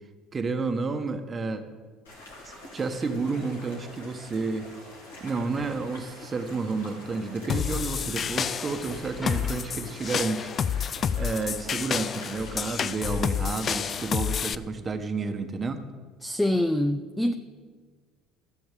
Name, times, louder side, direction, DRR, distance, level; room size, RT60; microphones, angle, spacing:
voice 1, 0.3-1.6 2.4-4.7 5.2-10.5 11.2-15.8, right 4 dB, 30° right, 7 dB, 1.3 m, -31 dB
sound 1, 2.0-14.0, left 1 dB, 85° left, 3.2 m, -46 dB
sound 2, 2.6-14.5, left 2 dB, 25° left, 3.1 m, -50 dB
sound 3, 7.5-14.5, left 7 dB, 40° left, 0.4 m, -29 dB
voice 2, 16.2-17.3, left 1 dB, 5° left, 7 dB, 0.7 m, -25 dB
13.5 x 7.1 x 7.5 m, 1.5 s
hypercardioid pair, 65°, 0 cm